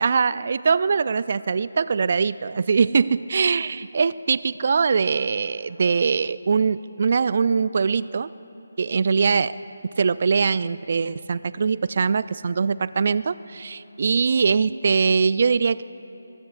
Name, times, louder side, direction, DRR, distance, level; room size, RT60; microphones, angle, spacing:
voice 1, 0.0-8.3 8.8-9.6 10.0-15.8, right 5 dB, 45° right, 17 dB, 0.3 m, -22 dB
23.5 x 20.5 x 2.5 m, 2.9 s
figure-of-eight pair, 155°, 0 cm